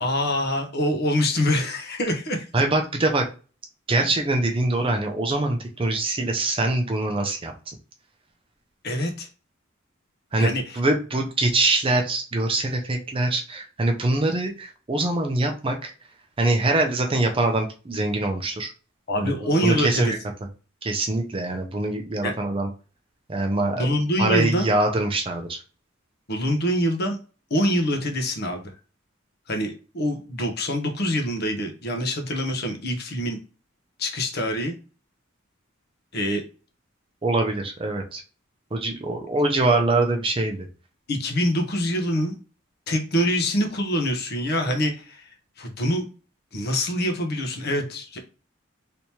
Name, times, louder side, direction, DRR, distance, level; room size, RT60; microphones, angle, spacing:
voice 1, 0.0-2.5 8.8-9.3 10.4-10.8 19.1-20.1 22.2-22.3 23.7-24.7 26.3-27.2 27.5-28.7 29.5-33.4 34.0-34.7 36.1-36.4 41.1-42.4 42.9-46.1 46.5-48.2, equal, 50° left, 4 dB, 0.8 m, -25 dB
voice 2, 2.5-3.3 3.9-7.5 10.3-15.9 16.4-18.7 19.2-19.3 19.6-20.2 20.8-22.7 23.3-23.9 24.2-25.6 37.2-38.2 38.7-40.7, right 2 dB, 25° right, 3 dB, 0.5 m, -23 dB
3.4 x 2.9 x 2.8 m, 0.35 s
head